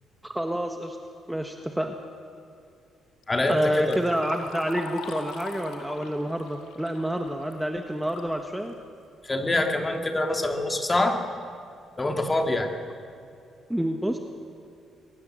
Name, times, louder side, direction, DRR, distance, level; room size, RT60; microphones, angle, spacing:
voice 1, 0.2-1.0 1.3-2.0 3.5-8.7 13.7-14.2, right 1 dB, 5° right, 4 dB, 1.5 m, -28 dB
Liquid, 3.2-8.3 8.7-8.8 9.7-9.8 10.2-10.6 11.2-11.3 11.8-11.9 12.3-12.6, left 6 dB, 90° left, 2.6 m, -42 dB
voice 2, 3.3-4.0 9.2-11.2 12.0-12.7, left 2 dB, 20° left, 4 dB, 2.6 m, -25 dB
23.5 x 19.0 x 7.9 m, 2.5 s
cardioid pair, 90°, 0 cm